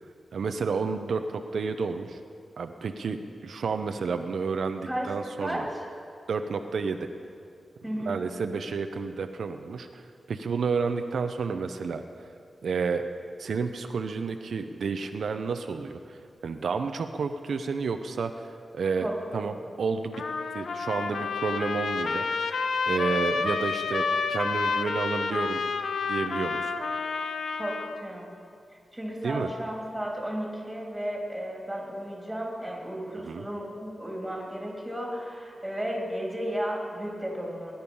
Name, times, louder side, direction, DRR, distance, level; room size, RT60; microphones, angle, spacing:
voice 1, 0.3-2.2 2.6-5.7 6.3-7.1 8.0-12.0 12.6-13.0 13.4-20.2 20.5-22.6 22.9-25.6 26.0-26.7 29.2-29.5 33.2-33.5, right 5 dB, 75° right, 7 dB, 0.7 m, -31 dB
voice 2, 7.8-8.1 19.0-19.1 19.4-19.5 27.6-28.3 28.9-37.7, equal, 5° right, -2 dB, 3.1 m, -34 dB
Trumpet, 20.1-28.0, left 4 dB, 75° left, 0.7 m, -29 dB
18.5 x 10.5 x 5.5 m, 2.3 s
wide cardioid pair, 155°, 0 cm